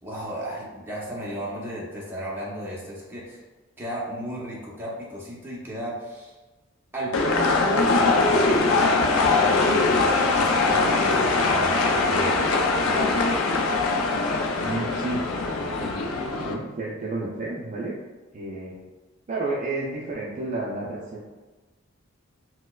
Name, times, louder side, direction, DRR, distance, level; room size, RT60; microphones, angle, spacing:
voice 1, 0.0-3.4 3.8-6.4 6.9-12.5, right 1 dB, 10° right, -6 dB, 0.7 m, -34 dB
sound 1, 7.1-16.5, left 3 dB, 85° left, 0.4 m, -22 dB
voice 2, 14.6-15.5 15.8-16.1 16.4-17.9 18.3-18.8 19.3-21.3, right 2 dB, 35° right, -4 dB, 0.4 m, -31 dB
4.3 x 2.1 x 2.3 m, 1.2 s
head